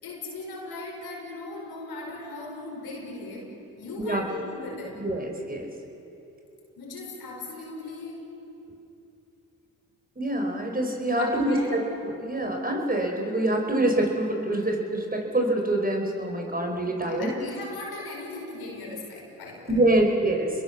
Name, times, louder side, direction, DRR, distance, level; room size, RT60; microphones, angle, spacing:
voice 1, 0.0-5.1 6.8-8.3 11.2-11.8 17.0-19.8, left 2 dB, 85° left, 0 dB, 5.1 m, -38 dB
voice 2, 5.0-5.7 10.2-17.3 19.7-20.5, right 1 dB, 25° right, 2 dB, 5.4 m, -25 dB
28.5 x 21.5 x 7.1 m, 2.8 s
supercardioid pair, 45°, 36 cm